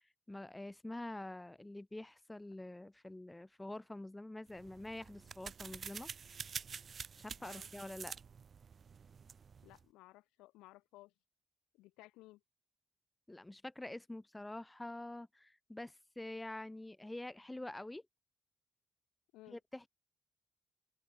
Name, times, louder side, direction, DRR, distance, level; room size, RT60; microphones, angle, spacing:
voice 1, 0.3-6.1 7.2-8.2 13.3-18.0 19.5-19.9, left 1 dB, 15° left, 0.6 m, -46 dB
sound 1, 4.5-9.8, right 6 dB, 50° right, 0.3 m, -48 dB
voice 2, 9.6-11.1 11.8-12.4 19.3-19.6, left 19 dB, 85° left, 0.9 m, -58 dB
open air
hypercardioid pair, 50°, 0 cm